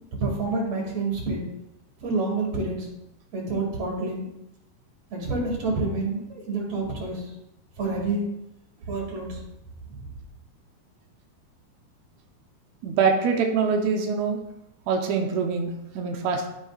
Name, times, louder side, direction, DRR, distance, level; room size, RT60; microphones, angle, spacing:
voice 1, 0.2-1.4 2.0-2.9 3.3-4.3 5.1-7.3 7.8-8.2 8.8-9.4 9.9-10.1, right 3 dB, 45° right, -2 dB, 3.3 m, -28 dB
voice 2, 12.8-14.4 14.9-16.5, right 5 dB, 90° right, 2 dB, 1.5 m, -24 dB
12.5 x 9.6 x 2.5 m, 0.87 s
omnidirectional pair, 4.8 m